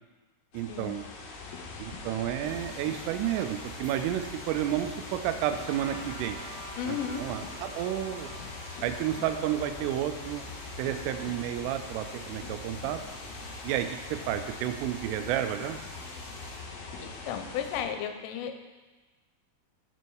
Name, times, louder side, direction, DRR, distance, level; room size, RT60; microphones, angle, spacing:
sound 1, 0.5-17.8, left 3 dB, 70° left, 2.4 m, -42 dB
voice 1, 0.5-1.0 1.8-6.4 6.9-8.3 8.8-10.4 10.8-13.0 13.6-15.8, right 11 dB, 85° right, 9 dB, 3.2 m, -31 dB
sound 2, 2.4-16.6, right 1 dB, 50° right, 1.5 m, -52 dB
Trumpet, 5.6-11.5, right 2 dB, 65° right, 2.0 m, -49 dB
voice 2, 6.8-7.2 17.0-18.6, left 8 dB, 90° left, 7 dB, 3.2 m, -34 dB
9.4 x 5.4 x 4.6 m, 1.2 s
omnidirectional pair, 5.7 m